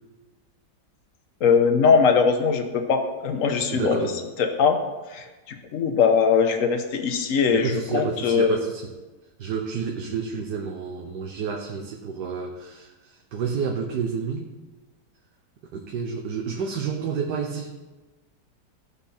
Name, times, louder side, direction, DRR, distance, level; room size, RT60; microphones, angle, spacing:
voice 1, 1.4-4.0 4.4-4.8 5.1-8.6, left 6 dB, 50° left, 6 dB, 1.3 m, -21 dB
voice 2, 3.7-4.2 7.5-8.9 9.4-14.5 15.7-17.8, right 6 dB, 70° right, 2 dB, 1.5 m, -30 dB
16.0 x 6.0 x 4.3 m, 1.2 s
omnidirectional pair, 1.9 m